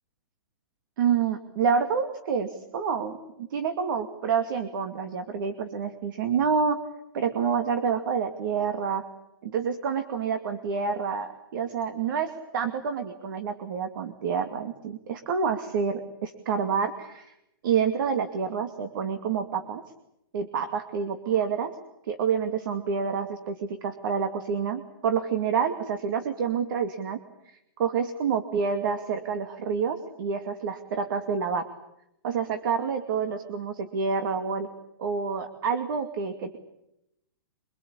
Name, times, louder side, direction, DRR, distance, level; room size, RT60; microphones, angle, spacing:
voice 1, 1.0-6.8 7.1-9.0 9.4-17.3 17.6-19.8 20.3-21.7 22.1-27.2 27.8-31.6 32.2-34.7 35.0-36.6, right 6 dB, 55° right, 7 dB, 2.5 m, -28 dB
25.0 x 22.0 x 8.6 m, 0.84 s
hypercardioid pair, 155°, 13 cm